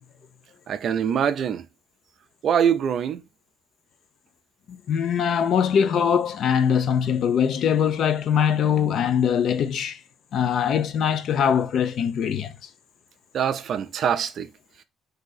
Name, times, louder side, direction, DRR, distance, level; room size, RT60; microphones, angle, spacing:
voice 1, 0.7-1.6 2.4-3.2 13.3-14.5, right 8 dB, 45° right, 0.4 m, -23 dB
voice 2, 4.7-10.0 10.3-12.6, left 8 dB, 50° left, 0.4 m, -22 dB
3.7 x 2.7 x 3.9 m
cardioid pair, 170°, 0 cm